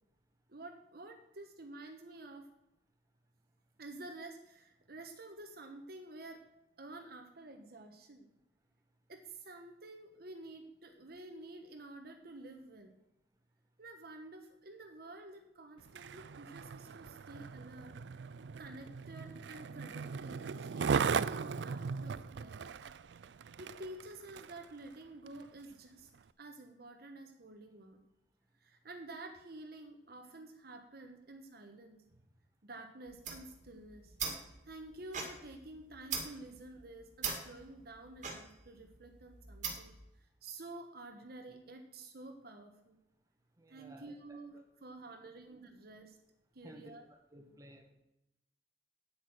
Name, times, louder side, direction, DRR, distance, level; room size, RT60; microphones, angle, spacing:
voice 1, 0.5-2.5 3.8-6.4 6.8-8.3 9.1-12.9 13.8-18.0 18.6-22.6 23.6-26.1 26.4-28.0 28.6-32.0 32.6-34.2 34.6-39.9 40.2-43.0 43.7-46.2 46.5-47.0 47.4-47.5, right 2 dB, 60° right, 5 dB, 1.3 m, -50 dB
Skateboard, 15.8-24.7 25.3-25.4, right 6 dB, 80° right, 0.4 m, -38 dB
sound 1, 33.1-40.0, right 5 dB, 45° right, 2.3 m, -42 dB
voice 2, 43.6-44.6 46.6-47.0 47.3-47.9, right 1 dB, 20° right, 2 dB, 1.8 m, -55 dB
9.2 x 8.6 x 6.2 m, 0.88 s
head